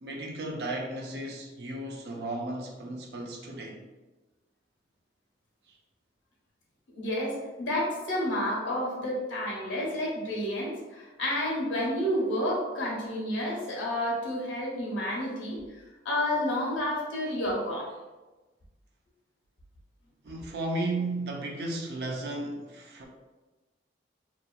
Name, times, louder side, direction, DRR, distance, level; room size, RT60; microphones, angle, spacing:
voice 1, 0.0-3.8 5.7-5.8 20.2-23.1, right 2 dB, 55° right, 0 dB, 0.5 m, -34 dB
voice 2, 6.9-15.6 16.0-17.9, left 1 dB, 90° left, -3 dB, 0.9 m, -30 dB
2.7 x 2.7 x 2.3 m, 1.2 s
head